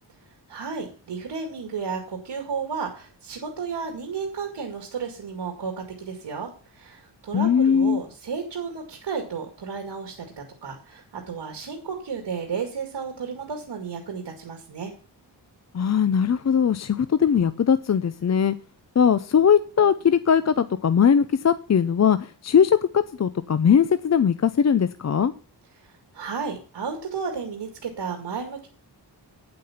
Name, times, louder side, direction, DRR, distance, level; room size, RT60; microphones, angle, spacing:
voice 1, 0.5-14.9 25.8-28.7, right 5 dB, 85° right, 3 dB, 2.3 m, -33 dB
voice 2, 7.3-8.0 15.7-18.6 19.0-25.3, left 7 dB, 40° left, 12 dB, 0.5 m, -20 dB
9.6 x 8.6 x 5.7 m, 0.36 s
wide cardioid pair, 135°, 42 cm